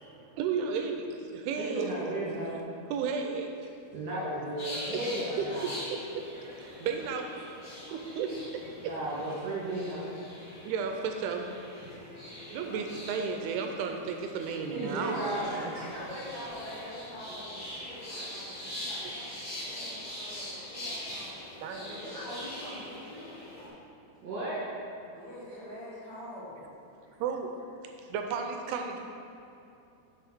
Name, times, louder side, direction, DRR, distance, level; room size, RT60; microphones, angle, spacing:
voice 1, 0.3-1.9 2.9-3.5 5.4-6.3 6.5-7.3 7.9-8.9 10.7-11.5 12.5-15.2 15.4-15.5 18.5-18.6 19.4-19.5 21.6-22.0 27.2-27.6 28.1-29.0, right 5 dB, 85° right, 4 dB, 2.5 m, -33 dB
voice 2, 1.6-2.6 3.9-5.8 8.8-10.1 14.7-15.7 24.2-24.6, right 1 dB, 50° right, -7 dB, 2.7 m, -34 dB
sound 1, 4.6-23.7, left 1 dB, 40° left, 2.0 m, -43 dB
voice 3, 14.9-21.3 21.7-23.4 25.1-26.6 27.0-27.1, equal, 80° left, -11 dB, 0.9 m, -44 dB
6.4 x 5.5 x 6.0 m, 2.7 s
omnidirectional pair, 4.7 m